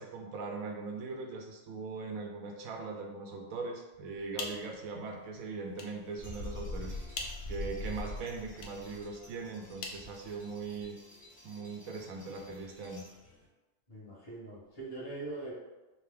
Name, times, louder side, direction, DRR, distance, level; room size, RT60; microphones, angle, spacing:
voice 1, 0.0-11.0 11.4-13.0, right 4 dB, 80° right, 2 dB, 1.0 m, -40 dB
sound 1, 4.1-10.9, left 3 dB, 65° left, 0.8 m, -47 dB
sound 2, 5.7-13.5, left 1 dB, 5° left, 1.2 m, -56 dB
Bird, 6.2-8.6, left 2 dB, 80° left, 1.3 m, -40 dB
voice 2, 13.9-15.5, right 2 dB, 30° left, -7 dB, 1.2 m, -42 dB
5.2 x 2.1 x 3.4 m, 1.1 s
omnidirectional pair, 1.5 m